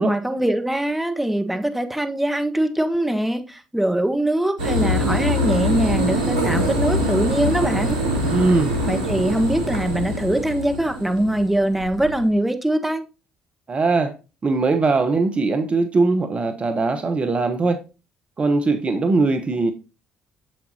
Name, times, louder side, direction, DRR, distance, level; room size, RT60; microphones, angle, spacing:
voice 1, 0.0-8.0 8.8-13.0, right 1 dB, 5° right, 1.4 m, -22 dB
sound 1, 4.6-12.3, equal, 85° right, 1.7 m, -23 dB
voice 2, 8.3-8.7 13.7-14.1 14.4-17.8 18.4-19.7, right 3 dB, 35° right, 1.0 m, -20 dB
7.6 x 7.5 x 2.8 m
hypercardioid pair, 50°, 3 cm